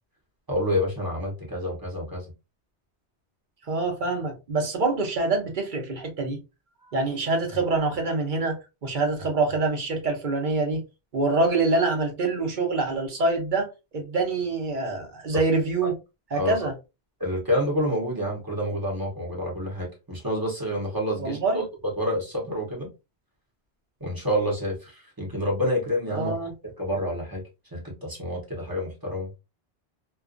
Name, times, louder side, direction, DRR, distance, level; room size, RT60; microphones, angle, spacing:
voice 1, 0.5-2.3 15.3-15.4 16.3-16.6 17.2-21.6 22.0-22.9 24.0-26.4 26.8-27.4 27.7-29.3, equal, 20° right, 0.8 m, -28 dB
voice 2, 3.7-6.4 6.9-10.8 11.1-16.0 16.3-16.7 21.2-21.6 26.1-26.5, right 3 dB, 50° right, 0.8 m, -25 dB
2.4 x 2.3 x 2.4 m
omnidirectional pair, 1.2 m